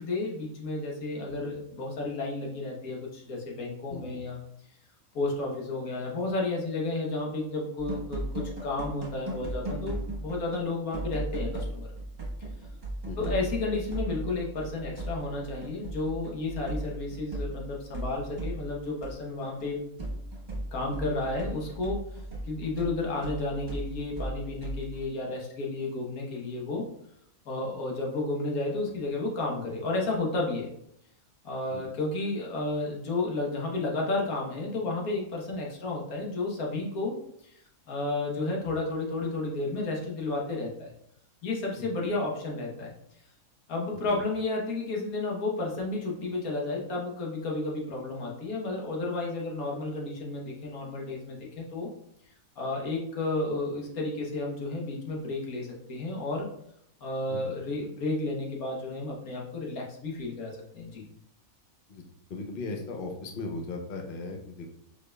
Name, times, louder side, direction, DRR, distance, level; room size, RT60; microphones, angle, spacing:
voice 1, 0.0-4.4 5.1-11.9 13.2-19.8 20.7-22.0 22.5-26.9 27.5-30.7 31.4-37.2 37.4-37.5 37.9-40.9 41.4-42.9 43.7-51.9 52.6-56.5 57.0-61.0, left 2 dB, 80° left, -1 dB, 1.5 m, -32 dB
sound 1, 7.8-10.7 10.9-19.1 19.4-25.1, right 1 dB, 35° right, 1.1 m, -37 dB
voice 2, 13.0-13.5 31.7-31.8 41.8-41.9 43.9-44.2 57.3-57.5 61.9-62.0 62.3-64.7, left 3 dB, 50° left, 3 dB, 0.7 m, -38 dB
4.8 x 4.7 x 2.2 m, 0.74 s
omnidirectional pair, 1.5 m